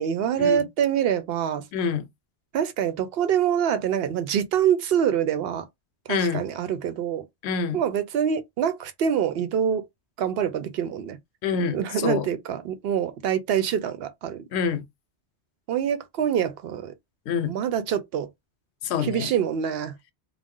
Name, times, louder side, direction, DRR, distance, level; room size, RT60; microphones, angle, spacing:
voice 1, 0.0-1.6 2.5-5.7 6.1-7.3 7.7-9.8 10.2-11.2 11.7-14.4 15.7-16.9 17.4-18.3 19.0-19.9, right 8 dB, 70° right, 0.8 m, -25 dB
voice 2, 1.7-2.0 6.1-6.4 7.4-7.8 11.4-12.3 14.5-14.8 17.3-17.5 18.8-19.3, left 6 dB, 80° left, 0.8 m, -26 dB
2.4 x 2.1 x 3.6 m
omnidirectional pair, 1.1 m